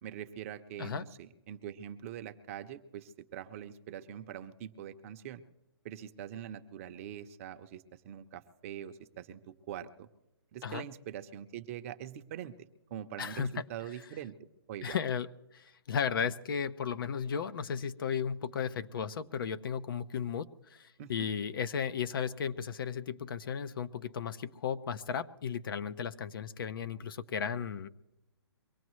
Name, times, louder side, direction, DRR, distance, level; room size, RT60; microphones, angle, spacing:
voice 1, 0.0-5.4 5.8-10.1 10.5-12.6 12.9-14.3 14.7-15.0 21.0-21.1, right 10 dB, 35° right, 9 dB, 0.7 m, -43 dB
voice 2, 13.2-13.6 14.8-27.9, left 7 dB, 55° left, 13 dB, 0.7 m, -35 dB
24.0 x 18.0 x 3.1 m, 0.92 s
hypercardioid pair, 150°, 14 cm